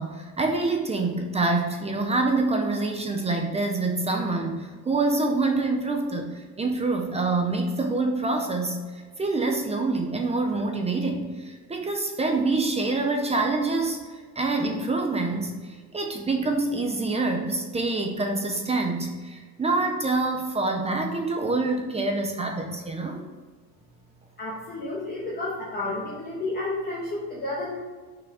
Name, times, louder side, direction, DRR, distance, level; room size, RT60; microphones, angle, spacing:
voice 1, 0.0-23.2, right 3 dB, 15° right, 3 dB, 0.5 m, -26 dB
voice 2, 24.4-27.8, left 2 dB, 20° left, -6 dB, 1.2 m, -31 dB
6.1 x 6.0 x 4.7 m, 1.5 s
cardioid pair, 170°, 45 cm